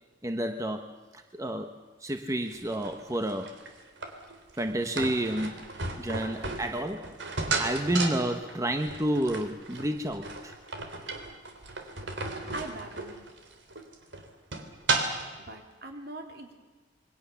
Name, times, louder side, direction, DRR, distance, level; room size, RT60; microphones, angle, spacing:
voice 1, 0.2-1.7 2.0-3.6 4.6-5.6 6.0-10.5, right 1 dB, 15° right, 6 dB, 1.1 m, -30 dB
sound 1, 2.5-15.4, right 3 dB, 80° right, 3.4 m, -34 dB
voice 2, 12.5-13.1 15.4-16.5, right 1 dB, 60° right, 4 dB, 3.6 m, -41 dB
27.5 x 22.5 x 7.1 m, 1.3 s
head